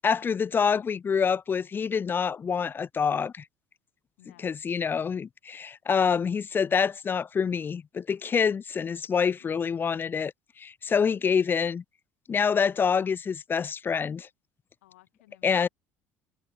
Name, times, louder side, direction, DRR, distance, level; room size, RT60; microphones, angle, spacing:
voice 1, 0.0-3.4 4.4-11.8 12.3-14.3 15.4-15.7, left 6 dB, 30° left, 0.4 m, -26 dB
voice 2, 4.2-4.6 9.1-9.7 14.8-15.7, left 18 dB, 85° left, 5.0 m, -58 dB
hypercardioid pair, 75°, 7 cm